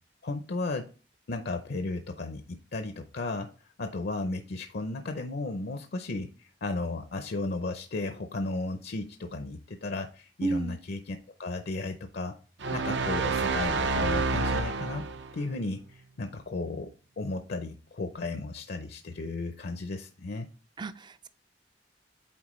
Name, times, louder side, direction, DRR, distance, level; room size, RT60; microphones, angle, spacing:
voice 1, 0.2-0.9 1.3-3.5 3.8-12.4 12.7-15.1 15.3-20.5, left 2 dB, 60° left, 0.6 m, -34 dB
voice 2, 10.4-10.8 20.8-21.3, right 3 dB, 25° right, 0.3 m, -32 dB
sound 1, 12.6-15.4, right 3 dB, 75° right, 0.7 m, -28 dB
8.6 x 4.4 x 3.1 m
head